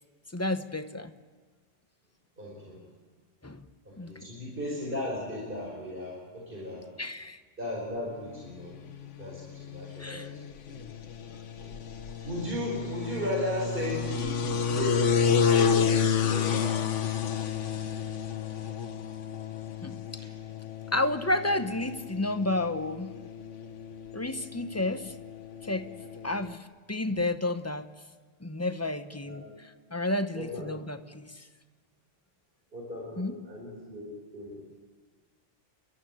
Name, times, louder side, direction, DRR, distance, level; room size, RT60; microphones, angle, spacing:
voice 1, 0.3-1.1 3.4-3.6 4.0-4.1 7.0-7.4 10.0-10.3 19.8-20.0 20.9-23.1 24.1-25.1 25.6-25.9 26.2-27.9 28.4-31.5 33.2-33.4, left 2 dB, 15° left, 9 dB, 0.8 m, -31 dB
voice 2, 2.4-2.8 3.9-6.9 7.6-8.7 9.2-10.2 10.7-10.8 11.6-11.7 12.2-15.2 15.5-16.7 20.2-20.3 29.2-29.4 30.3-30.7 32.7-34.6, left 1 dB, 45° right, -3 dB, 5.2 m, -36 dB
sound 1, 8.5-26.6, left 7 dB, 80° left, 1.4 m, -31 dB
29.5 x 12.5 x 9.0 m, 1.4 s
omnidirectional pair, 1.2 m